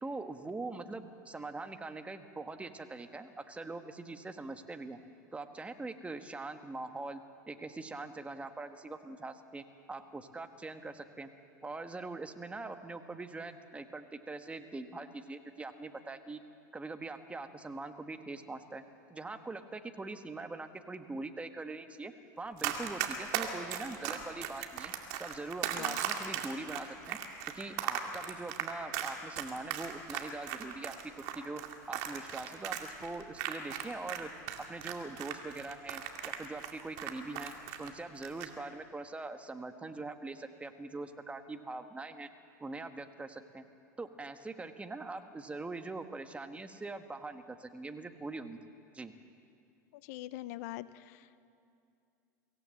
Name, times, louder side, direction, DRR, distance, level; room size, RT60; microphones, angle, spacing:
voice 1, 0.0-5.0 5.3-11.3 11.6-16.4 16.7-18.8 19.1-24.9 25.2-27.2 27.5-31.6 31.9-34.3 34.7-37.5 37.8-42.3 42.6-43.6 44.0-48.6 48.9-49.1, right 3 dB, 15° right, 8 dB, 1.4 m, -42 dB
Run, 22.6-34.2 34.5-37.9 38.2-38.5, right 11 dB, 65° right, 2.3 m, -37 dB
voice 2, 50.0-51.4, left 16 dB, 65° left, 16 dB, 0.7 m, -43 dB
24.5 x 16.5 x 7.7 m, 2.5 s
hypercardioid pair, 95°, 9 cm